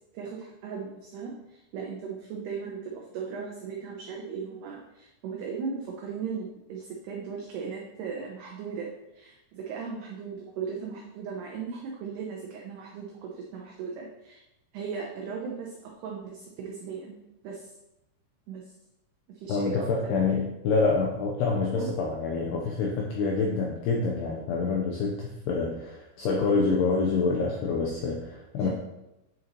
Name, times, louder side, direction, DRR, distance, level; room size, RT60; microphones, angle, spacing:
voice 1, 0.1-8.9 9.1-14.4 14.7-17.2 17.4-17.7 18.5-18.7 19.3-20.5 21.7-21.9 28.6-28.7, right 5 dB, 90° right, 0 dB, 2.2 m, -37 dB
voice 2, 19.5-28.7, left 4 dB, 85° left, -2 dB, 2.3 m, -27 dB
9.4 x 6.6 x 3.0 m, 0.92 s
omnidirectional pair, 5.8 m